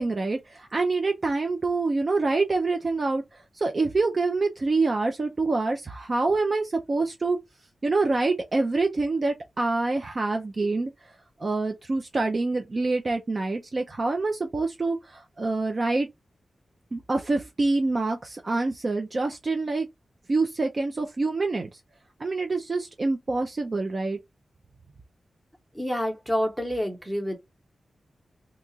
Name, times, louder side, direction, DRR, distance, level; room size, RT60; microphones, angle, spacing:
voice 1, 0.0-7.4 7.8-10.9 11.4-16.1 16.9-19.9 20.3-21.7 22.2-24.2, right 3 dB, 35° right, 0.4 m, -26 dB
voice 2, 25.7-27.4, equal, 5° right, 0.9 m, -28 dB
2.8 x 2.3 x 3.9 m
wide cardioid pair, 150°, 0 cm